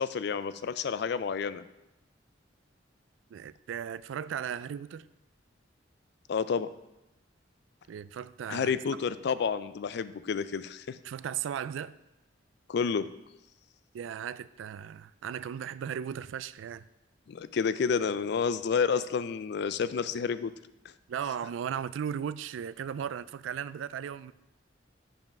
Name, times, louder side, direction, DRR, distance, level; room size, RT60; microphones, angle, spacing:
voice 1, 0.0-1.6 6.3-6.7 8.5-11.0 12.7-13.1 17.3-20.5, left 6 dB, 60° left, 0.4 m, -30 dB
voice 2, 3.3-5.1 7.9-8.7 11.0-11.9 13.9-16.9 21.1-24.3, right 8 dB, 85° right, 0.3 m, -36 dB
7.2 x 5.4 x 5.9 m
head